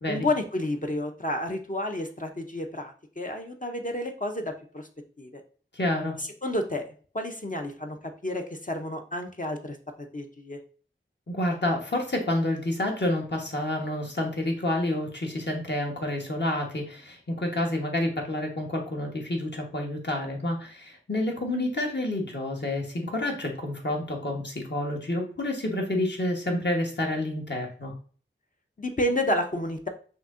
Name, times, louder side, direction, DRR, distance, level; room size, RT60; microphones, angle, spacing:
voice 1, 0.1-4.9 5.2-5.4 6.2-6.8 7.1-9.8 10.1-10.6 28.8-29.9, left 1 dB, 40° left, 3 dB, 0.5 m, -30 dB
voice 2, 5.7-6.2 11.3-27.9, left 1 dB, 55° left, 0 dB, 1.1 m, -29 dB
5.9 x 2.7 x 2.5 m, 0.42 s
wide cardioid pair, 45°, 21 cm